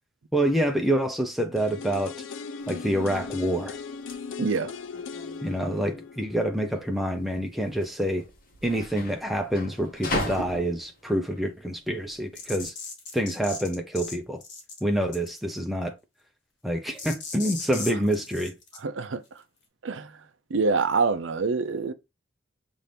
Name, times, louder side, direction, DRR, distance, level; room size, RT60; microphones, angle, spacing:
voice 1, 0.3-2.1 2.7-3.8 5.4-8.2 8.6-12.7 13.1-14.4 14.8-16.0 16.6-18.5, right 1 dB, ahead, 0.6 m, -27 dB
sound 1, 1.6-7.5 7.8-7.9, left 5 dB, 80° left, 0.5 m, -39 dB
sound 2, 2.6-12.7, left 1 dB, 45° left, 1.1 m, -38 dB
voice 2, 4.4-4.7 17.9-18.0 18.8-19.2 19.8-20.1 20.5-21.9, right 4 dB, 75° right, 0.6 m, -26 dB
sound 3, 12.3-14.1 14.4-14.8 15.1-15.5 17.0-18.8, left 4 dB, 65° left, 1.4 m, -37 dB
5.7 x 2.6 x 3.4 m
head